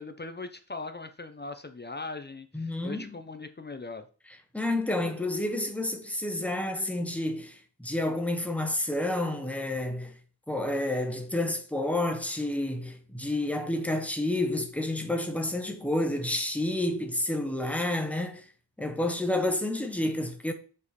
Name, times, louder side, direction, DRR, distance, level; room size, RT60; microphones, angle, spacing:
voice 1, 0.0-4.1, left 3 dB, 25° left, 0.6 m, -40 dB
voice 2, 2.5-3.2 4.5-10.1 10.5-18.4 18.8-20.5, left 1 dB, 5° left, 1.0 m, -30 dB
7.2 x 4.8 x 4.2 m
wide cardioid pair, 135°, 42 cm